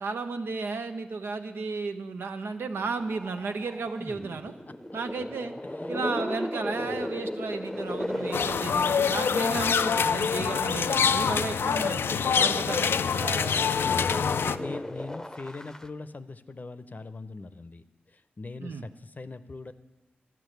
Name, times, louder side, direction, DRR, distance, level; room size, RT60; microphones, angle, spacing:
voice 1, 0.0-4.5 4.9-5.5 5.9-12.0 12.4-14.6 18.6-18.8, right 4 dB, 75° right, 7 dB, 0.8 m, -34 dB
sound 1, 2.7-10.0 10.6-15.9, left 1 dB, 15° left, 0.7 m, -37 dB
sound 2, 8.3-14.6, left 6 dB, 80° left, 0.3 m, -25 dB
voice 2, 13.8-19.7, left 3 dB, 45° left, 12 dB, 0.7 m, -42 dB
11.5 x 6.0 x 9.2 m, 1.2 s
cardioid pair, 45°, 4 cm